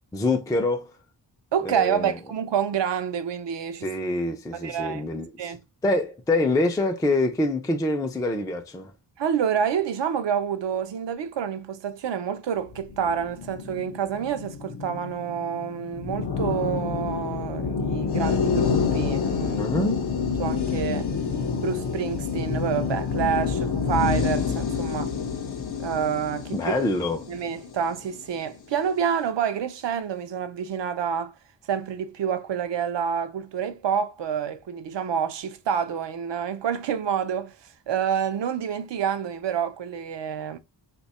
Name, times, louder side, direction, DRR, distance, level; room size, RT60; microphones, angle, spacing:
voice 1, 0.1-0.9 1.7-2.1 3.8-5.3 5.8-8.9 19.6-20.0 26.5-27.3, left 2 dB, 10° left, 0.3 m, -25 dB
voice 2, 1.5-3.9 4.5-5.0 5.4-5.6 9.2-19.6 20.4-21.1 21.6-25.1 25.8-26.6 27.3-31.3 31.7-37.5 37.9-40.6, right 8 dB, 75° right, 0.6 m, -28 dB
sound 1, 12.7-28.2, left 5 dB, 60° left, 0.6 m, -28 dB
2.8 x 2.2 x 4.0 m
wide cardioid pair, 130°, 44 cm